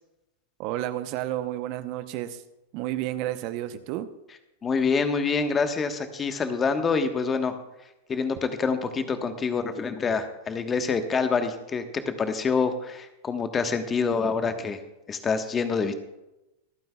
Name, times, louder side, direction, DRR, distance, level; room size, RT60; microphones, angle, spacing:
voice 1, 0.6-2.4 2.7-4.1, right 13 dB, 50° right, 11 dB, 0.8 m, -31 dB
voice 2, 4.6-7.6 8.1-14.8 15.1-15.9, left 5 dB, 25° left, 7 dB, 1.3 m, -26 dB
26.0 x 9.3 x 2.4 m, 0.96 s
hypercardioid pair, 95°, 0 cm